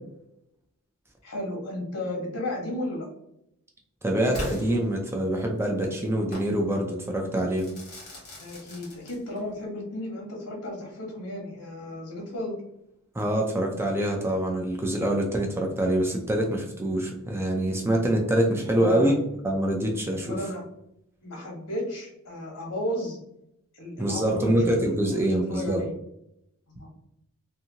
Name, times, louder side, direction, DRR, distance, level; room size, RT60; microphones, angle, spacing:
voice 1, 1.2-3.1 8.4-12.5 18.7-19.1 20.3-20.7 21.2-23.2 23.7-25.9 26.7-26.9, left 1 dB, 90° left, 0 dB, 1.1 m, -34 dB
voice 2, 4.0-7.7 13.1-19.2 19.4-20.4 24.0-25.8, right 1 dB, 10° right, 0 dB, 0.3 m, -25 dB
Crackle / Fireworks, 4.3-5.5 6.3-6.6 7.5-9.5, left 1 dB, 45° left, 1.2 m, -38 dB
2.7 x 2.6 x 2.7 m, 0.78 s
head